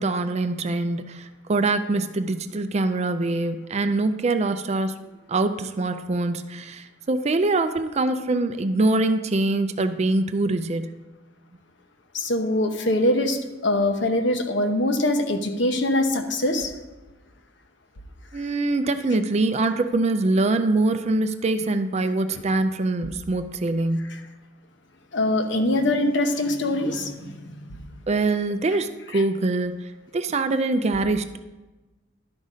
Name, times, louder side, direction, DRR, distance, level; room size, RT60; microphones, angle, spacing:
voice 1, 0.0-5.0 5.3-11.0 18.3-24.2 28.1-31.4, right 2 dB, 35° right, 9 dB, 0.4 m, -24 dB
voice 2, 12.1-16.7 22.3-22.4 25.1-27.6 29.1-29.2, left 1 dB, 65° left, 5 dB, 0.9 m, -23 dB
11.5 x 4.1 x 5.0 m, 1.1 s
head